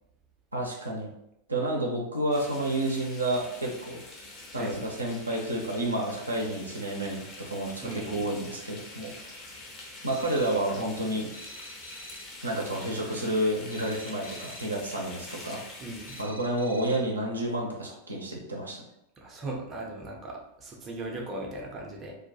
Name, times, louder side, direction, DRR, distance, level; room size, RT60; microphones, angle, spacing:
voice 1, 0.5-1.1 1.5-4.0 4.5-9.4 10.0-11.3 12.4-15.6 16.2-18.8, right 1 dB, 80° right, -1 dB, 0.5 m, -30 dB
sound 1, 2.3-16.2, left 2 dB, 30° left, 0.6 m, -45 dB
voice 2, 7.8-8.2 15.8-16.2 19.2-22.1, right 2 dB, 25° right, -1 dB, 0.5 m, -38 dB
sound 2, 10.1-10.7 11.3-12.4 13.7-14.8 16.1-17.2, equal, 70° left, 0.4 m, -47 dB
2.3 x 2.1 x 2.6 m, 0.83 s
figure-of-eight pair, 90°, 0 cm